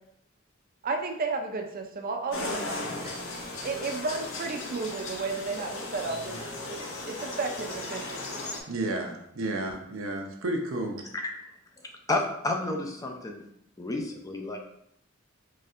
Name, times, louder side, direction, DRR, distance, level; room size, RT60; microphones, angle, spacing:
voice 1, 0.8-2.8 3.6-6.3 6.7-8.2, right 4 dB, 45° right, 4 dB, 0.5 m, -33 dB
sound 1, 2.3-8.6, left 2 dB, 70° left, 0.7 m, -36 dB
voice 2, 2.8-3.1 6.1-6.2 8.7-11.0, right 2 dB, 90° right, 2 dB, 0.7 m, -32 dB
voice 3, 12.1-13.5 13.8-14.6, left 2 dB, 15° left, 2 dB, 0.4 m, -30 dB
4.1 x 3.2 x 2.5 m, 0.74 s
head